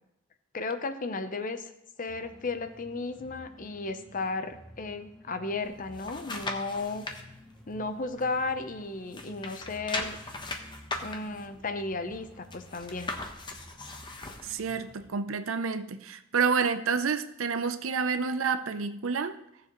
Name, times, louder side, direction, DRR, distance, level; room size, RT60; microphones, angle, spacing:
voice 1, 0.5-1.7 2.0-7.0 7.7-10.2 11.0-13.1, left 3 dB, 40° left, 0.7 m, -34 dB
sound 1, 2.1-15.1, equal, ahead, 1.7 m, -52 dB
sound 2, 5.6-7.2 7.7-8.8 9.1-14.6 15.1-15.2, left 2 dB, 25° left, 0.9 m, -39 dB
voice 2, 14.4-19.4, right 5 dB, 85° right, 0.6 m, -29 dB
16.0 x 7.1 x 3.1 m
head